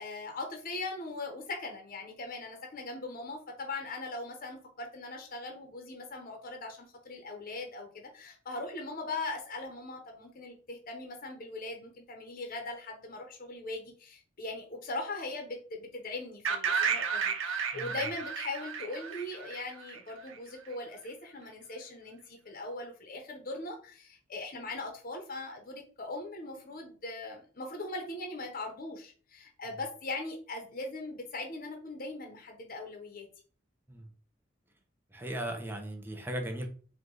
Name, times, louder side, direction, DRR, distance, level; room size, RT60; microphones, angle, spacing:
voice 1, 0.0-33.3, left 2 dB, 45° left, 3 dB, 0.9 m, -40 dB
sound 1, 16.4-20.3, right 6 dB, 75° right, 0.7 m, -32 dB
voice 2, 35.1-36.7, right 1 dB, 10° right, 3 dB, 0.8 m, -37 dB
4.8 x 2.4 x 3.8 m, 0.40 s
head